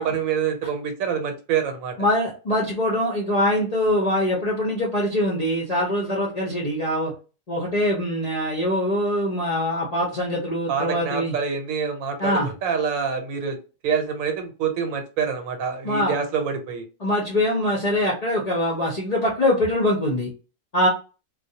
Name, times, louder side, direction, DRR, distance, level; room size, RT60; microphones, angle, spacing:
voice 1, 0.0-1.9 10.7-13.6 13.8-16.8, right 6 dB, 80° right, 5 dB, 1.0 m, -26 dB
voice 2, 2.0-7.1 7.5-11.4 12.2-12.5 15.8-16.1 17.0-20.3 20.7-20.9, left 1 dB, 50° left, -4 dB, 0.5 m, -23 dB
2.3 x 2.0 x 2.7 m, 0.33 s
omnidirectional pair, 1.4 m